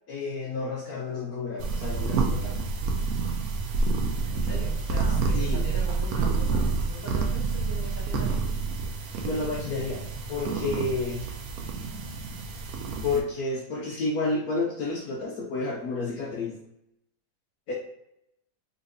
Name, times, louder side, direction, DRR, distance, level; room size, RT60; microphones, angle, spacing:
voice 1, 0.1-2.7 5.3-5.6 9.2-10.0 10.3-11.3 13.0-16.6 17.7-17.8, left 3 dB, 65° left, -1 dB, 1.0 m, -30 dB
sound 1, 1.6-13.2, right 4 dB, 65° right, 0.9 m, -28 dB
voice 2, 4.3-8.4, left 1 dB, 15° right, -8 dB, 0.9 m, -40 dB
4.1 x 2.9 x 2.6 m, 0.81 s
omnidirectional pair, 2.0 m